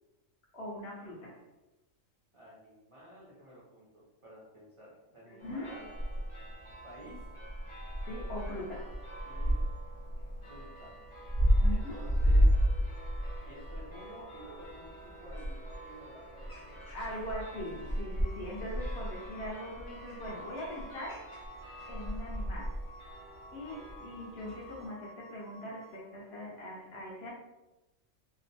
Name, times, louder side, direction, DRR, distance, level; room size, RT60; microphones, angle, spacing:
voice 1, 0.5-1.4 5.3-5.7 8.0-8.9 11.6-12.0 16.9-21.4 21.9-22.8 23.5-27.3, left 1 dB, 60° left, -4 dB, 0.8 m, -41 dB
voice 2, 2.3-5.9 6.8-7.3 9.2-9.6 10.5-11.0 11.7-12.6 13.4-17.1, equal, 50° right, -7 dB, 0.3 m, -52 dB
sound 1, 5.4-24.9, equal, 40° left, 0.4 m, -33 dB
sound 2, 18.2-26.0, left 1 dB, 85° left, 1.1 m, -54 dB
2.8 x 2.0 x 2.6 m, 1.0 s
omnidirectional pair, 1.4 m